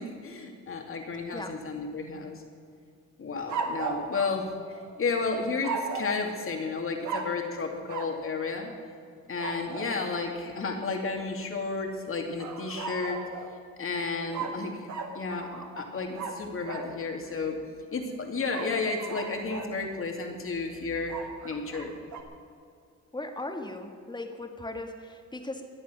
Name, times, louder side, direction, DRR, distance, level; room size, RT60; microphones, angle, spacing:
voice 1, 0.0-2.4 3.2-4.4 5.0-8.7 9.3-13.2 13.8-14.9 15.1-17.6 17.9-21.2 21.4-22.0, left 4 dB, 45° left, 3 dB, 2.5 m, -32 dB
sound 1, 3.5-5.1 5.6-6.2 7.0-7.4 7.9-8.2 9.4-9.9 12.4-13.6 14.3-16.9 18.5-19.7 21.1-22.2, right 4 dB, 70° right, 1.7 m, -36 dB
voice 2, 23.1-25.7, left 2 dB, 15° left, 5 dB, 1.8 m, -38 dB
22.0 x 8.2 x 6.4 m, 2.3 s
cardioid pair, 90°, 30 cm